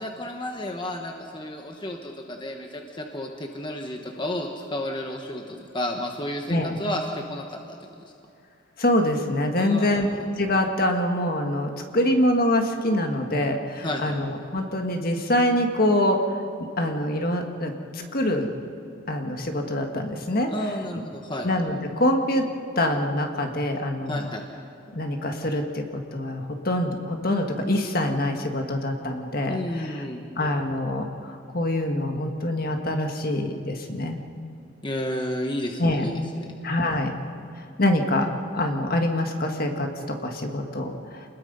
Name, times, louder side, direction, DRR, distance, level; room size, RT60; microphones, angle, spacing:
voice 1, 0.0-7.9 9.6-10.3 13.8-14.2 20.5-21.5 24.1-24.4 29.5-30.2 34.8-36.5, left 1 dB, 25° left, 2 dB, 1.1 m, -32 dB
voice 2, 8.8-10.1 10.4-16.2 16.8-18.5 19.1-20.5 21.4-22.5 22.7-24.3 24.9-30.0 30.4-34.2 35.8-36.1 36.6-37.1 37.8-38.3 38.5-41.2, left 1 dB, 45° left, 4 dB, 1.7 m, -25 dB
28.0 x 20.5 x 5.5 m, 2.5 s
head